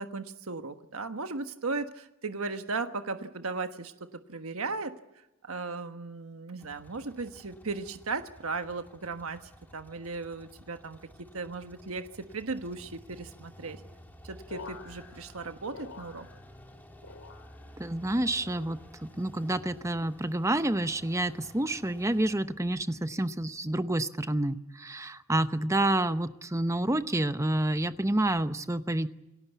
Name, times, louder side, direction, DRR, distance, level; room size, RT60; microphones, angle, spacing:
voice 1, 0.0-4.9 5.4-13.8 14.2-16.3, right 3 dB, 75° right, 8 dB, 1.3 m, -36 dB
sound 1, 6.6-22.4, equal, 10° left, 2.8 m, -53 dB
sound 2, 14.5-16.7 17.0-17.8 18.3-19.0 19.7-20.1 21.0-21.4 22.3-22.6, left 4 dB, 85° left, 3.0 m, -50 dB
voice 2, 17.8-29.1, right 1 dB, 15° right, 11 dB, 0.8 m, -29 dB
28.0 x 17.5 x 8.2 m, 0.96 s
head